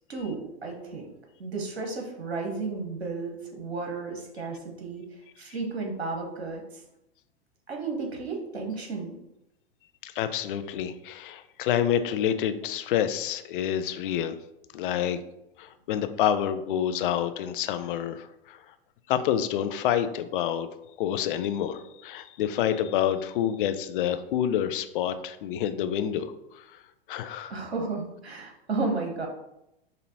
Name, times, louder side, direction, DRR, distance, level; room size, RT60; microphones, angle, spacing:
voice 1, 0.1-1.1 1.4-5.0 5.4-6.8 7.7-9.1 27.5-29.3, right 3 dB, 80° right, 1 dB, 0.9 m, -33 dB
voice 2, 10.0-14.4 14.7-15.2 15.6-18.6 19.1-20.7 21.0-26.8 27.1-27.5, left 10 dB, 55° left, 10 dB, 0.5 m, -28 dB
5.4 x 2.7 x 2.7 m, 0.86 s
hypercardioid pair, 100°, 31 cm